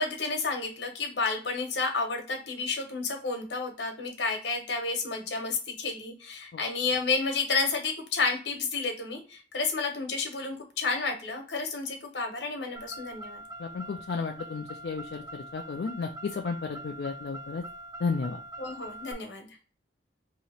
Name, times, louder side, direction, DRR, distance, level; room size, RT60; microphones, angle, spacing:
voice 1, 0.0-13.4 18.6-19.5, left 4 dB, 80° left, 3 dB, 1.2 m, -31 dB
Car, 12.8-19.1, right 1 dB, 20° right, 0.5 m, -44 dB
voice 2, 13.6-17.6 18.0-18.4, left 4 dB, 65° left, 2 dB, 0.4 m, -33 dB
2.9 x 2.8 x 4.2 m, 0.38 s
head